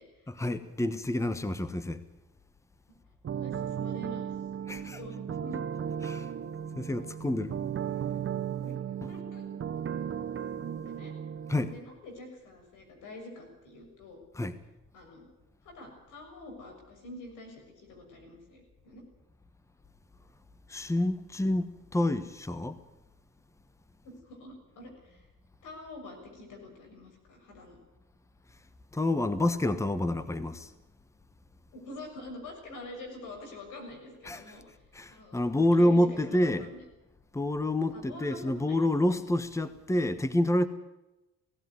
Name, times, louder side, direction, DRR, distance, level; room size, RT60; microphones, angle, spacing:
voice 1, 0.3-2.0 4.7-5.0 6.0-6.3 6.7-7.5 11.5-11.7 14.3-14.5 20.7-22.8 28.9-30.7 34.2-34.4 34.9-36.7 37.3-40.7, left 1 dB, 10° left, 1.2 m, -28 dB
sound 1, 3.2-11.8, right 8 dB, 45° right, 1.1 m, -35 dB
voice 2, 3.3-4.2 4.7-5.6 8.6-8.8 9.1-9.4 10.8-11.1 11.7-14.2 14.9-15.3 15.6-19.0 24.0-25.2 25.6-27.8 31.7-34.8 35.1-35.4 35.7-36.8 37.9-38.8, left 2 dB, 90° left, 6.5 m, -46 dB
18.0 x 16.5 x 9.6 m
cardioid pair, 90°, 30 cm